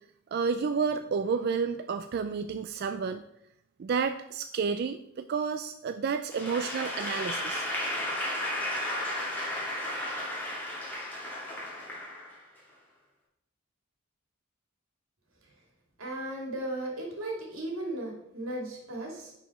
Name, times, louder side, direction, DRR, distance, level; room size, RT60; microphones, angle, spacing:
voice 1, 0.3-3.2 3.8-7.6, right 5 dB, 50° right, 9 dB, 0.3 m, -30 dB
Applause / Crowd, 6.3-12.6, left 1 dB, 10° left, 2.3 m, -34 dB
voice 2, 16.0-19.3, right 1 dB, 90° right, 0 dB, 2.3 m, -36 dB
10.0 x 4.6 x 4.2 m, 0.80 s
head